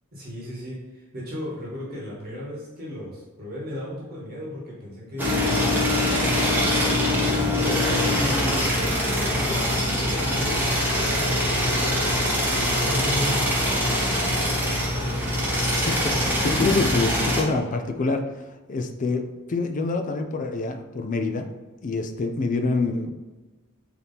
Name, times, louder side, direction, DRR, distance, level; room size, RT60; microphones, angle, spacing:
voice 1, 0.1-6.6 7.6-10.6 11.0-12.0 12.6-14.0, left 1 dB, 45° right, -5 dB, 1.1 m, -35 dB
sound 1, 5.2-17.4, left 1 dB, 10° right, 0.8 m, -23 dB
voice 2, 16.4-18.2 18.7-21.5 21.8-23.1, left 3 dB, 35° left, 6 dB, 0.4 m, -26 dB
4.0 x 2.9 x 3.5 m, 1.2 s
head